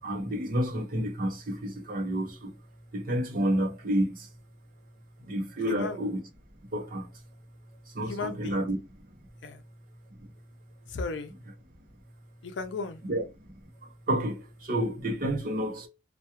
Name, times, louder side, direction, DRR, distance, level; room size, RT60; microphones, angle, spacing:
voice 1, 0.0-2.5 2.9-4.3 5.2-6.2 6.7-7.1 7.9-9.1 10.2-10.3 13.0-13.5 13.8-15.9, right 1 dB, 45° right, 0.6 m, -30 dB
voice 2, 5.7-6.0 8.0-8.6 9.4-9.6 10.9-11.3 12.4-13.0, left 4 dB, 75° left, 0.5 m, -35 dB
2.3 x 2.2 x 2.8 m
head